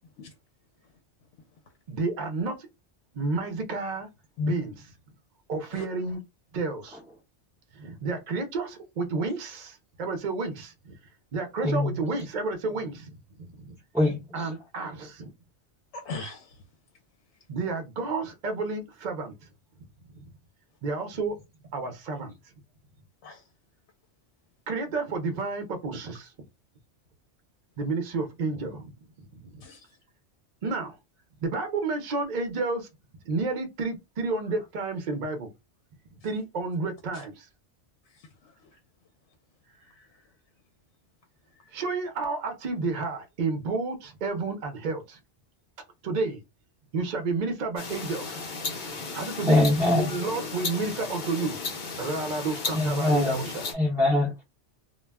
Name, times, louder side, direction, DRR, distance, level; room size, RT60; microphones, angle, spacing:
voice 1, 1.9-2.6 3.1-4.1 4.4-4.8 5.5-6.2 6.5-7.0 7.7-11.0 11.3-13.2 13.6-13.7 14.3-15.3 17.5-19.3 20.1-20.2 20.8-21.4 21.7-22.4 24.7-26.3 27.8-28.9 29.3-29.6 30.6-30.9 31.4-32.9 33.3-35.5 36.2-37.5 41.7-45.2 46.0-46.4 46.9-48.4 49.1-51.6 52.0-53.6, right 3 dB, 50° right, 0.6 m, -31 dB
voice 2, 11.6-12.0 13.9-14.6 49.4-50.1 52.7-53.4 53.7-54.4, left 2 dB, 5° right, 0.4 m, -23 dB
voice 3, 15.9-16.6 23.2-23.4 29.6-30.0 37.1-37.2 38.1-38.5 39.9-40.1, left 2 dB, 80° left, 0.9 m, -36 dB
sound 1, 47.8-53.7, left 4 dB, 50° left, 0.7 m, -35 dB
2.3 x 2.1 x 3.3 m
omnidirectional pair, 1.2 m